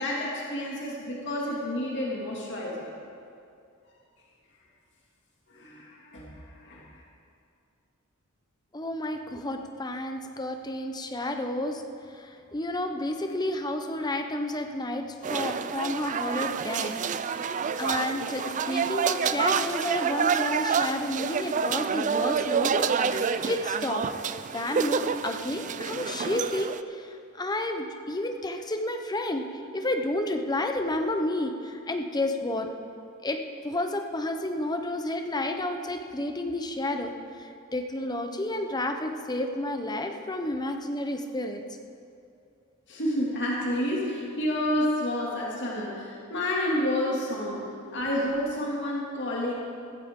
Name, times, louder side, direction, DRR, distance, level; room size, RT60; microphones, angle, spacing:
voice 1, 0.0-2.9 5.5-6.3 6.6-6.8 42.9-47.6 47.9-49.5, left 1 dB, 55° left, -4 dB, 2.5 m, -29 dB
voice 2, 8.7-11.8 12.1-17.0 17.4-24.1 24.5-32.7 33.2-37.1 37.4-41.6, left 1 dB, 20° left, 5 dB, 0.9 m, -31 dB
sound 1, 15.2-26.8, right 6 dB, 35° right, 0.4 m, -28 dB
15.0 x 15.0 x 3.8 m, 2.5 s
head